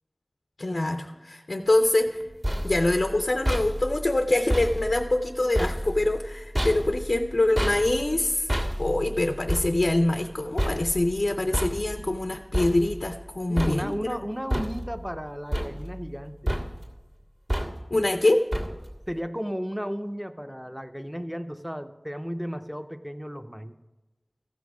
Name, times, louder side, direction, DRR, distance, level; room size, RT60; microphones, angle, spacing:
voice 1, 0.6-2.2 2.6-8.5 8.8-14.0 17.9-18.4, left 2 dB, 80° left, 6 dB, 0.5 m, -24 dB
sound 1, 2.1-13.3 13.6-14.2 14.5-15.2 15.5-16.2 16.5-17.0 17.5-18.0 18.5-19.1, equal, 50° right, 1.8 m, -31 dB
voice 2, 13.5-16.6 19.1-23.8, equal, 5° right, 9 dB, 0.6 m, -34 dB
14.5 x 6.2 x 4.8 m, 1.1 s
wide cardioid pair, 40°, 0 cm